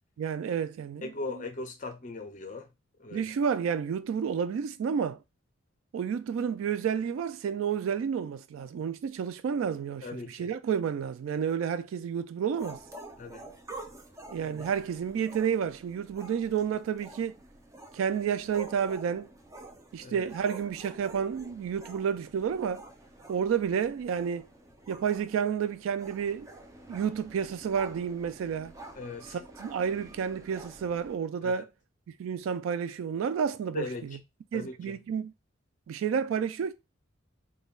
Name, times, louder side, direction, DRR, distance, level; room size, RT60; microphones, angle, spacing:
voice 1, 0.2-1.5 3.1-5.2 5.9-12.8 14.3-17.3 17.9-19.3 19.9-22.8 23.3-24.5 24.9-26.5 26.9-28.7 29.2-31.7 32.1-34.2 34.5-35.3 35.9-36.7, right 7 dB, 85° right, 0.3 m, -30 dB
voice 2, 1.0-2.7 3.0-3.3 10.0-10.5 13.2-13.4 20.0-20.3 29.0-29.4 31.4-31.6 33.7-34.2 34.5-34.9, left 3 dB, 40° left, 0.5 m, -39 dB
sound 1, 12.5-31.2, right 2 dB, 15° right, 0.5 m, -48 dB
5.3 x 2.2 x 2.3 m
head